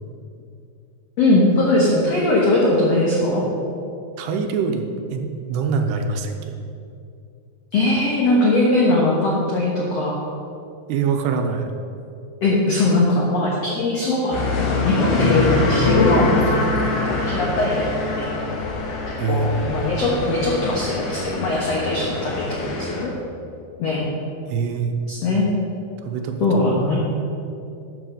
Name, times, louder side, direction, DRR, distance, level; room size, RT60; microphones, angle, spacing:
voice 1, 1.2-3.4 7.7-10.1 12.4-14.4 14.8-18.2 19.3-22.4 22.8-23.1 23.8-24.1 25.1-25.5 26.4-27.0, left 2 dB, 80° left, -4 dB, 1.4 m, -20 dB
voice 2, 4.2-4.8 5.1-6.5 10.9-11.7 19.2-19.7 24.5-25.0 26.0-26.6, right 5 dB, 85° right, 5 dB, 2.7 m, -24 dB
sound 1, 14.3-23.1, left 3 dB, 60° left, 3.2 m, -24 dB
11.5 x 5.6 x 6.7 m, 2.6 s
omnidirectional pair, 5.0 m